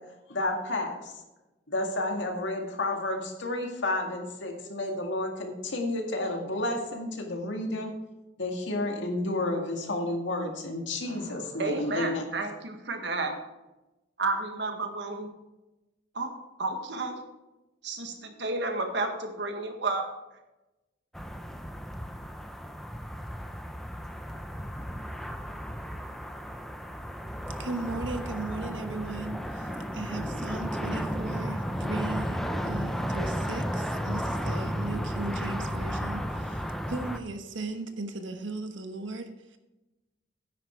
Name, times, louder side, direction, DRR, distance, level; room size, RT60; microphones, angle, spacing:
voice 1, 0.3-1.1 1.7-7.9 8.4-12.3, left 2 dB, 80° left, 2 dB, 2.0 m, -31 dB
voice 2, 11.1-13.3 14.2-15.3 16.1-16.3 16.6-17.2 17.8-20.1, right 3 dB, 65° right, 5 dB, 1.5 m, -32 dB
sound 1, 21.1-37.2, equal, ahead, 0.5 m, -33 dB
voice 3, 27.6-39.6, right 2 dB, 85° right, 7 dB, 1.2 m, -37 dB
9.8 x 9.5 x 4.5 m, 1.0 s
head